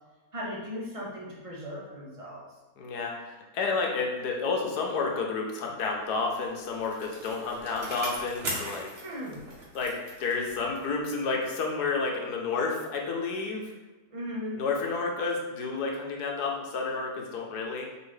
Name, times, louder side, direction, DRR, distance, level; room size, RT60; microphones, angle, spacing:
voice 1, 0.3-2.4 9.0-9.4 14.1-14.6, equal, 30° right, -4 dB, 0.7 m, -37 dB
voice 2, 2.8-8.9 9.7-13.7 14.5-17.9, left 4 dB, 85° left, 1 dB, 1.3 m, -30 dB
Bicycle, 6.1-11.0 11.4-11.5, right 1 dB, 45° right, 1.1 m, -40 dB
5.4 x 2.7 x 3.2 m, 1.1 s
omnidirectional pair, 1.7 m